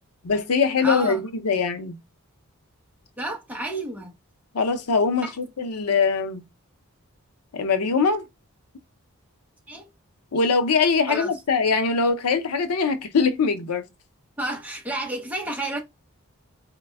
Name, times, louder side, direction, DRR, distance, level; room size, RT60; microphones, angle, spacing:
voice 1, 0.2-2.0 4.5-6.4 7.5-8.2 10.3-13.9, left 4 dB, 90° left, 0.6 m, -22 dB
voice 2, 0.8-1.2 3.2-4.1 5.2-5.3 9.7-9.9 11.1-11.3 14.4-15.8, right 1 dB, 5° right, 0.7 m, -30 dB
4.1 x 2.1 x 3.3 m
head